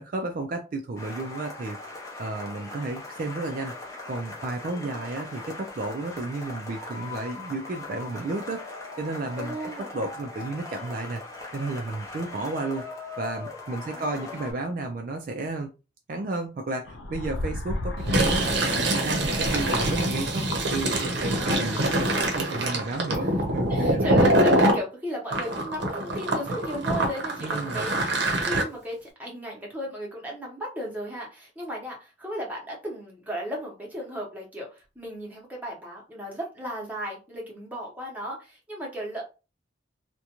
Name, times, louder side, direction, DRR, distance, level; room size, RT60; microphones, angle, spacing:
voice 1, 0.0-1.8 2.2-3.7 4.1-11.2 11.5-12.9 13.2-15.7 16.1-24.1 27.4-27.9, right 2 dB, 45° right, 4 dB, 0.3 m, -32 dB
sound 1, 1.0-14.5, left 3 dB, 15° left, 0.6 m, -40 dB
voice 2, 4.7-5.1 9.4-9.9 13.9-14.4 19.7-19.9 21.3-21.9 23.2-23.3 23.7-39.2, equal, 10° right, -3 dB, 0.8 m, -35 dB
sound 2, 16.9-20.9 21.2-22.4, left 1 dB, 75° left, 0.4 m, -34 dB
Fill (with liquid), 18.0-24.8 25.3-28.6, right 1 dB, 70° right, 0.7 m, -24 dB
2.4 x 2.2 x 2.9 m, 0.30 s
head